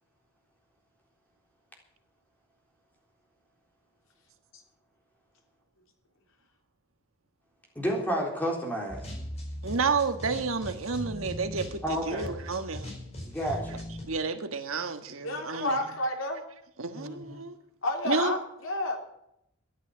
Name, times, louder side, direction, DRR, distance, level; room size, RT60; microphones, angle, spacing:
voice 1, 7.8-9.0 11.8-12.3 13.2-13.8 16.9-17.4, equal, 10° left, 3.9 m, -31 dB
sound 1, 8.9-14.0, equal, 30° left, 4.8 m, -39 dB
voice 2, 9.6-12.9 14.0-15.8 16.8-17.6 18.0-18.4, right 4 dB, 90° right, 1.5 m, -30 dB
voice 3, 15.2-16.4 17.8-19.0, left 1 dB, 80° left, 3.4 m, -30 dB
13.0 x 11.0 x 7.3 m
head